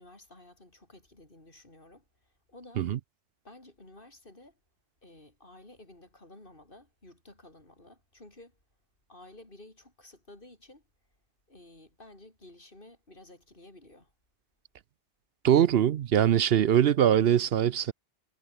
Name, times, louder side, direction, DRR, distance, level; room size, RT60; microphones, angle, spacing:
voice 1, 0.0-2.9 3.4-4.6 5.0-8.6 9.1-10.8 11.5-14.1, left 1 dB, 50° left, 4.9 m, -53 dB
voice 2, 15.4-17.9, right 10 dB, 65° right, 0.8 m, -22 dB
omnidirectional pair, 1.2 m